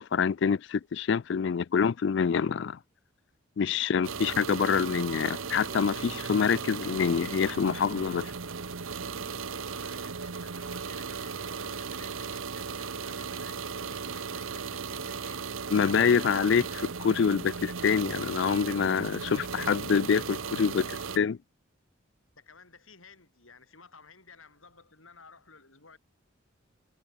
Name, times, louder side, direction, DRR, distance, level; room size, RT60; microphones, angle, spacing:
voice 1, 0.0-2.8 3.6-8.3 15.7-20.8 21.2-21.4, left 6 dB, 60° left, 0.4 m, -26 dB
voice 2, 3.7-4.8 9.6-15.5 19.3-19.4 20.6-20.7 22.4-26.0, left 4 dB, 85° left, 6.4 m, -55 dB
sound 1, 4.0-21.2, right 5 dB, 80° right, 1.0 m, -36 dB
sound 2, 4.3-9.3, right 1 dB, 20° right, 1.7 m, -51 dB
head